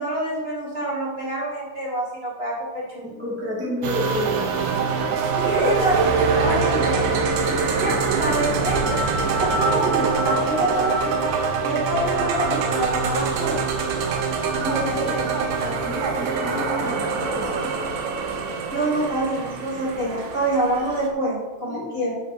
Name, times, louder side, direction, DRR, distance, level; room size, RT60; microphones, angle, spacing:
voice 1, 0.0-3.0 5.4-6.0 6.3-7.1 7.5-9.0 9.4-11.3 11.6-13.6 14.6-15.4 18.7-22.1, right 1 dB, 25° right, -6 dB, 1.4 m, -26 dB
voice 2, 3.0-4.7 14.6-14.7 15.0-15.2 15.6-17.9 21.6-21.8, left 1 dB, 5° right, -6 dB, 1.1 m, -31 dB
sound 1, 3.8-21.1, right 5 dB, 70° right, 2.3 m, -25 dB
sound 2, 5.9-11.5, right 3 dB, 85° right, 1.7 m, -26 dB
11.0 x 5.7 x 5.5 m, 1.2 s
omnidirectional pair, 5.1 m